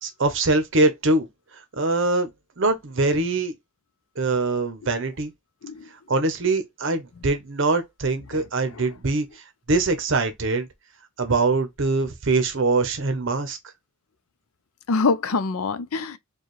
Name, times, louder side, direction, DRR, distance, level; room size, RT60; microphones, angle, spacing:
voice 1, 0.0-1.3 1.8-2.3 2.6-3.5 4.2-5.3 6.1-9.4 9.7-10.7 11.2-13.6, right 3 dB, 55° right, 0.8 m, -23 dB
voice 2, 14.9-16.2, left 4 dB, 75° left, 0.5 m, -25 dB
4.6 x 2.3 x 3.1 m
head